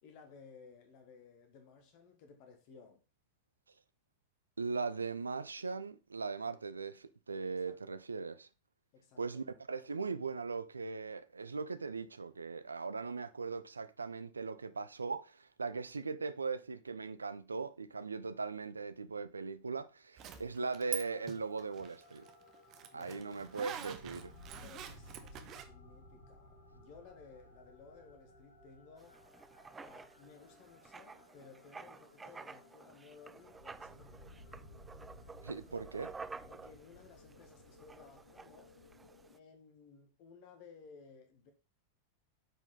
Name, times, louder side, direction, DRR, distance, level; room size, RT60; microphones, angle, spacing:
voice 1, 0.0-3.0 7.7-8.0 8.9-9.2 20.2-20.6 22.9-23.3 24.6-29.2 29.8-34.5 36.5-38.8 39.3-41.5, left 5 dB, 45° left, 1.5 m, -58 dB
voice 2, 4.6-8.5 9.2-22.2 22.9-24.3 35.4-36.1, right 4 dB, 75° right, 0.5 m, -39 dB
Zipper (clothing), 20.2-21.0 21.3-25.6, right 9 dB, 35° right, 1.1 m, -45 dB
sound 1, 20.7-39.4, left 1 dB, 80° left, 2.2 m, -58 dB
Writing, 29.0-39.4, right 4 dB, 15° right, 0.4 m, -52 dB
9.0 x 4.9 x 3.7 m
figure-of-eight pair, 90°, 0 cm